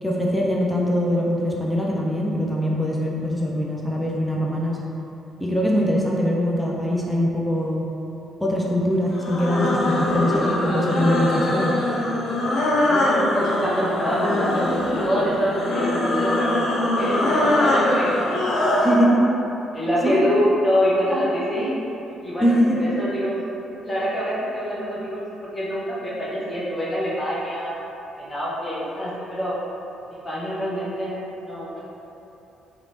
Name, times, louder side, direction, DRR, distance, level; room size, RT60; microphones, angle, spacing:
voice 1, 0.0-4.8 5.4-7.8 8.4-11.7 18.8-19.2 20.0-20.2 22.4-22.9, equal, ahead, -4 dB, 0.5 m, -22 dB
sound 1, 9.1-19.0, left 1 dB, 60° left, 0.5 m, -22 dB
voice 2, 12.9-14.6 15.0-19.2 19.7-21.7 22.2-22.5 22.8-23.4 23.8-25.3 25.5-27.7 28.2-29.6 30.2-31.8, equal, 25° left, -7 dB, 1.0 m, -25 dB
3.2 x 2.9 x 2.6 m, 2.9 s
hypercardioid pair, 45°, 0 cm